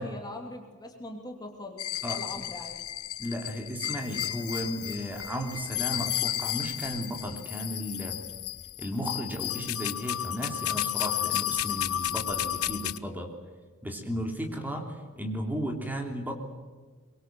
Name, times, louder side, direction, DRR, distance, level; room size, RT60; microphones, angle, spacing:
voice 1, 0.0-1.8 2.1-2.8, left 2 dB, 20° left, 2 dB, 2.9 m, -41 dB
sound 1, 1.8-13.0, left 13 dB, 75° left, 0.8 m, -33 dB
voice 2, 2.0-2.4 3.2-8.2 8.8-13.3 13.8-16.3, equal, 10° right, 2 dB, 3.4 m, -34 dB
24.0 x 23.0 x 7.8 m, 1.4 s
head